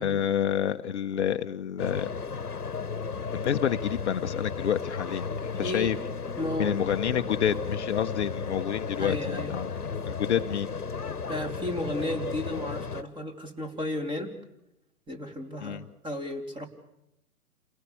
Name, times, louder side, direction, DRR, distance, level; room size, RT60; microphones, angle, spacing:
voice 1, 0.0-2.1 3.3-6.0 6.6-9.7 10.0-10.7 15.6-15.9, left 9 dB, 50° left, 8 dB, 1.0 m, -28 dB
sound 1, 1.8-13.0, left 5 dB, 85° left, 1.4 m, -34 dB
voice 2, 5.6-5.9 6.4-6.7 9.0-9.5 11.3-14.3 15.1-16.7, left 1 dB, 10° right, 5 dB, 3.3 m, -33 dB
29.0 x 18.0 x 6.9 m, 0.87 s
figure-of-eight pair, 125°, 45 cm